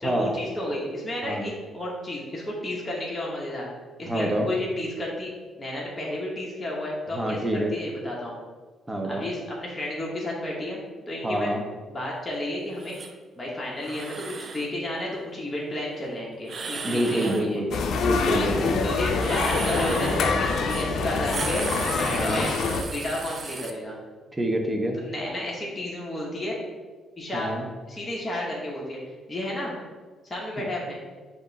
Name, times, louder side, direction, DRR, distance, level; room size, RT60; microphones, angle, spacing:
voice 1, 0.0-3.7 4.0-5.3 5.6-8.3 9.1-10.8 11.1-11.5 11.9-13.0 13.4-17.6 18.8-22.6 22.9-24.0 24.9-26.6 27.2-27.5 27.9-29.0 29.3-29.7 30.2-31.0, left 1 dB, 20° left, -4 dB, 1.0 m, -32 dB
voice 2, 4.1-4.5 7.1-7.7 8.9-9.2 11.2-11.6 16.8-17.6 18.0-18.7 22.1-22.5 24.4-25.0 27.3-27.6 30.6-30.7, right 1 dB, 15° right, 2 dB, 0.7 m, -27 dB
sound 1, 12.8-13.1 13.8-14.7 16.4-17.5 19.1-20.3 20.7-20.9 21.2-23.7, right 4 dB, 45° right, 0.4 m, -35 dB
sound 2, 17.7-22.8, left 4 dB, 65° left, 0.4 m, -25 dB
5.1 x 2.5 x 3.9 m, 1.4 s
cardioid pair, 90°, 0 cm